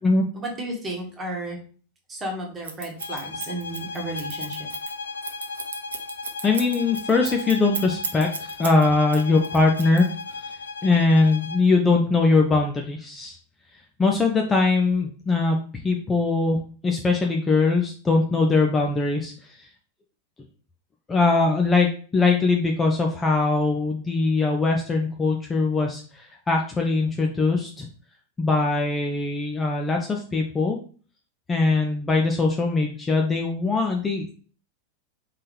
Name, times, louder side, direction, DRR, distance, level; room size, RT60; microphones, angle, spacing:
voice 1, 0.3-1.6 2.1-4.6, right 1 dB, 20° right, 0 dB, 1.5 m, -33 dB
Scissors, 2.6-8.8 9.1-10.4, right 5 dB, 65° right, 0.7 m, -34 dB
sound 1, 3.0-11.7, left 4 dB, 70° left, 0.4 m, -36 dB
voice 2, 6.4-10.1 10.4-10.5 10.8-13.4 14.0-15.6 15.8-19.7 21.1-21.9 22.1-27.9 28.4-30.8 31.5-34.3, left 3 dB, 15° left, 2 dB, 0.6 m, -21 dB
4.0 x 3.7 x 3.3 m, 0.42 s
figure-of-eight pair, 90°, 0 cm